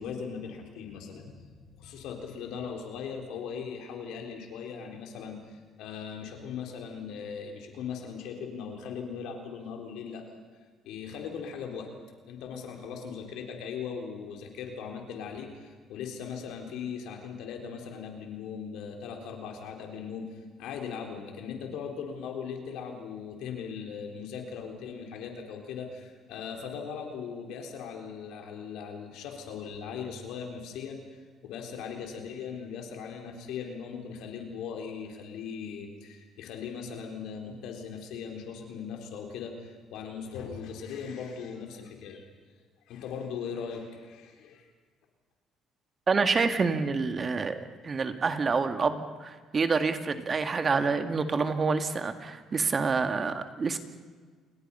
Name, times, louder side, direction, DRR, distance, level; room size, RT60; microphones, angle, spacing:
voice 1, 0.0-10.3 10.8-11.9 12.3-42.2 42.9-44.7, left 6 dB, 80° left, 3 dB, 4.1 m, -39 dB
voice 2, 46.1-53.8, right 4 dB, 35° right, 8 dB, 2.0 m, -27 dB
29.0 x 22.0 x 5.7 m, 1.5 s
supercardioid pair, 80°, 0 cm